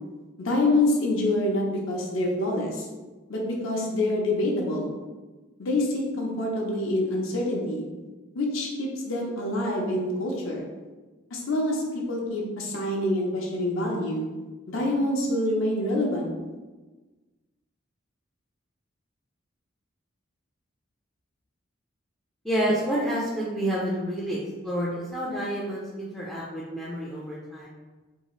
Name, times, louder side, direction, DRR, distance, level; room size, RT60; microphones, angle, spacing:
voice 1, 0.4-2.7 3.3-4.9 5.6-7.9 8.3-10.6 11.3-14.2 14.7-16.3, left 1 dB, 75° left, -1 dB, 0.5 m, -26 dB
voice 2, 22.4-27.7, equal, ahead, -8 dB, 0.3 m, -29 dB
2.6 x 2.3 x 3.0 m, 1.2 s
head